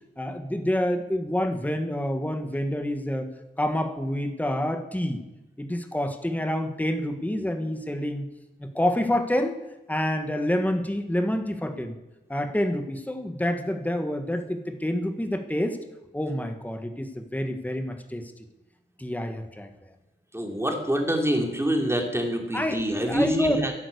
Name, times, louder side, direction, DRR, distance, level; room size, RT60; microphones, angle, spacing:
voice 1, 0.2-3.3 3.6-5.2 5.6-8.3 8.6-9.5 9.9-12.0 12.3-15.8 16.1-18.3 19.0-19.7 22.5-23.6, left 1 dB, 10° left, 6 dB, 1.3 m, -27 dB
voice 2, 20.3-23.7, right 1 dB, 15° right, 2 dB, 3.0 m, -26 dB
11.5 x 11.0 x 8.3 m, 0.98 s
wide cardioid pair, 85°, 20 cm